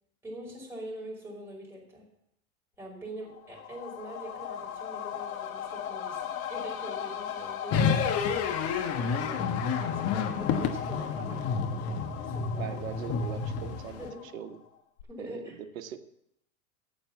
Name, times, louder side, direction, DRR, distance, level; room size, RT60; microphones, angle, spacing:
voice 1, 0.2-2.1 2.8-9.4 9.8-12.8 14.0-14.2 15.1-15.6, right 1 dB, 5° right, -4 dB, 5.4 m, -44 dB
sound 1, 3.2-14.7 15.0-15.1, left 9 dB, 80° left, 1.2 m, -38 dB
sound 2, 7.7-14.1, left 5 dB, 35° left, 1.2 m, -30 dB
voice 2, 12.6-14.0 14.3-14.6 15.2-16.0, right 9 dB, 70° right, 7 dB, 1.2 m, -41 dB
9.1 x 7.9 x 7.3 m, 0.77 s
hypercardioid pair, 110°, 41 cm